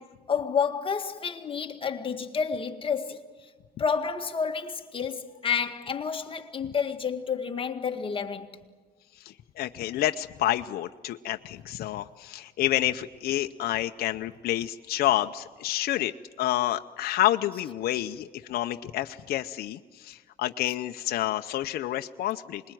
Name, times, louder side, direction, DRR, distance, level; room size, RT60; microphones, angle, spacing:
voice 1, 0.0-3.3 3.8-8.6, left 6 dB, 30° left, 1.9 m, -30 dB
voice 2, 9.2-16.1 16.4-22.6, left 14 dB, 65° left, 0.8 m, -29 dB
26.0 x 21.0 x 9.3 m
cardioid pair, 110°, 17 cm